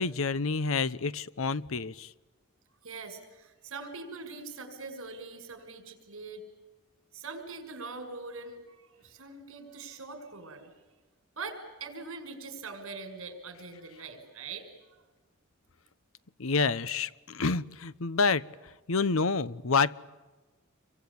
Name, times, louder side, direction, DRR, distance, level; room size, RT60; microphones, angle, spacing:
voice 1, 0.0-2.1 16.4-18.4 18.9-19.9, left 4 dB, 65° left, 17 dB, 0.9 m, -28 dB
voice 2, 2.8-6.4 7.1-10.7 11.4-14.7, right 4 dB, 65° right, 6 dB, 6.1 m, -42 dB
28.0 x 23.5 x 8.6 m, 1.2 s
head